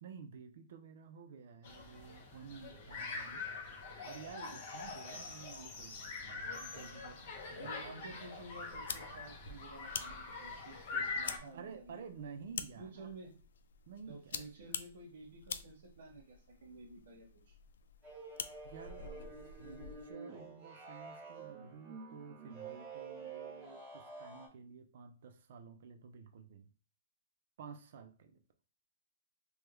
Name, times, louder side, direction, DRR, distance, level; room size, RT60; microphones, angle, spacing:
voice 1, 0.0-3.5 4.0-7.2 7.5-8.2 11.5-13.1 13.9-14.7 18.6-19.3 19.6-26.7 27.6-28.4, right 6 dB, 50° right, 7 dB, 0.5 m, -52 dB
sound 1, 1.6-11.4, left 4 dB, 40° left, 0.6 m, -44 dB
voice 2, 7.6-12.1 12.8-13.3 14.1-17.5, right 2 dB, 65° right, -5 dB, 1.1 m, -52 dB
sound 2, 8.7-20.1, left 6 dB, 85° left, 0.3 m, -47 dB
sound 3, 18.0-24.5, right 4 dB, 15° right, 0.9 m, -49 dB
3.4 x 2.2 x 3.1 m, 0.37 s
hypercardioid pair, 180°, 0 cm